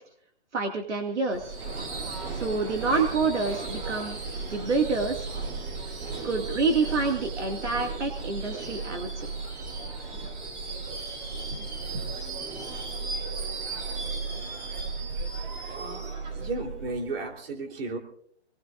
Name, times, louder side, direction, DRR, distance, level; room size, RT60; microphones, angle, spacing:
voice 1, 0.5-1.6 2.3-4.2 4.5-5.3 6.2-9.3 11.5-11.6 11.9-12.1, right 4 dB, 85° right, 3 dB, 2.3 m, -27 dB
Subway metro underground / Screech, 1.3-17.3, right 4 dB, 25° right, 2.8 m, -35 dB
voice 2, 15.7-18.0, right 3 dB, 55° right, 2 dB, 3.6 m, -34 dB
26.0 x 19.5 x 2.6 m, 0.64 s
hypercardioid pair, 155°, 34 cm